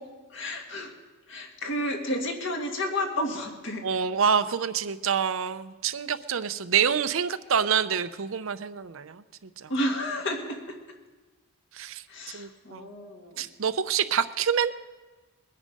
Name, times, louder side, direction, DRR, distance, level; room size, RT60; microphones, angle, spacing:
voice 1, 0.3-0.9 1.3-3.8 9.7-10.6 12.1-13.4, left 1 dB, 60° left, 2 dB, 2.1 m, -31 dB
voice 2, 3.8-9.7 11.7-12.0 12.3-12.9 13.4-14.7, right 7 dB, 65° right, 12 dB, 0.6 m, -27 dB
21.5 x 9.8 x 5.3 m, 1.3 s
head